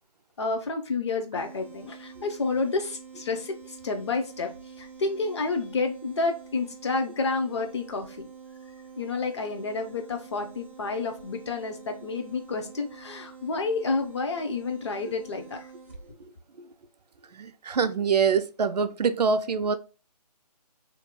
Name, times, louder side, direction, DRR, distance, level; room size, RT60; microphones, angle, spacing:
voice 1, 0.4-4.5 4.8-8.3 9.0-15.7, left 3 dB, 45° left, 0.6 m, -30 dB
sound 1, 1.3-16.1, right 6 dB, 20° right, 0.4 m, -47 dB
voice 2, 17.3-19.8, right 5 dB, 75° right, 0.4 m, -25 dB
2.7 x 2.2 x 3.7 m
figure-of-eight pair, 150°, 21 cm